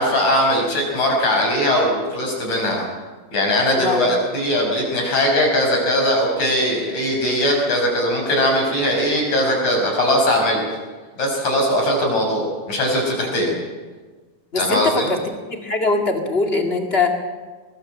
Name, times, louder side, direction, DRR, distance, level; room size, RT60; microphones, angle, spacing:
voice 1, 0.0-2.8 3.3-10.6 11.2-13.5 14.6-15.1, equal, 50° left, 0 dB, 6.8 m, -20 dB
voice 2, 3.8-4.1 13.4-13.5 14.5-15.2 15.5-17.2, left 3 dB, 25° left, 3 dB, 1.6 m, -22 dB
23.0 x 20.0 x 7.7 m, 1.4 s
omnidirectional pair, 4.2 m